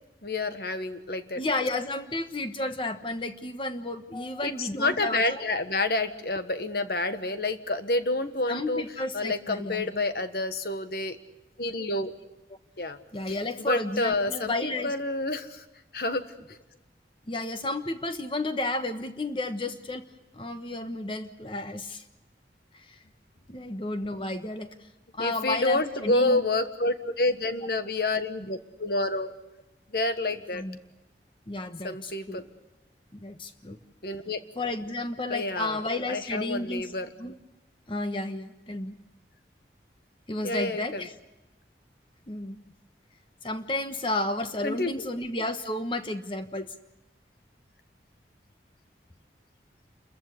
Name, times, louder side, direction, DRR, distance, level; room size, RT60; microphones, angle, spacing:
voice 1, 0.2-1.4 4.4-8.8 9.1-11.2 11.6-12.1 12.8-13.0 13.6-15.6 15.9-16.3 25.2-29.3 29.9-30.6 31.8-32.4 34.0-34.4 35.3-35.8 36.1-37.1 40.4-41.0 44.6-45.1, left 2 dB, 60° left, 9 dB, 1.4 m, -28 dB
voice 2, 1.4-5.4 8.5-9.9 13.1-14.9 17.3-20.1 20.3-22.0 22.7-23.0 23.5-24.7 25.1-26.4 30.5-30.8 31.5-32.5 33.1-33.8 34.5-36.9 37.2-37.3 37.9-38.9 40.3-41.1 42.3-42.6 43.4-46.7, left 2 dB, 30° left, 8 dB, 1.2 m, -32 dB
28.5 x 14.5 x 8.4 m, 1.0 s
head